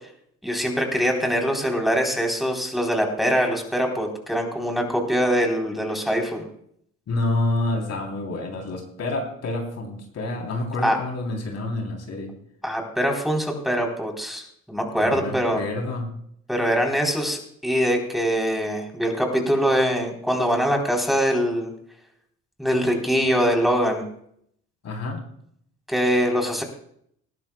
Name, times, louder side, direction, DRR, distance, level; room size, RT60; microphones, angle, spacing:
voice 1, 0.4-6.5 10.8-11.0 12.6-15.6 16.5-21.7 22.6-24.0 25.9-26.6, equal, ahead, 2 dB, 3.6 m, -23 dB
voice 2, 7.1-12.3 15.0-16.1 24.8-25.2, left 2 dB, 60° left, 2 dB, 3.4 m, -28 dB
19.5 x 13.5 x 2.3 m, 0.67 s
cardioid pair, 90°, 30 cm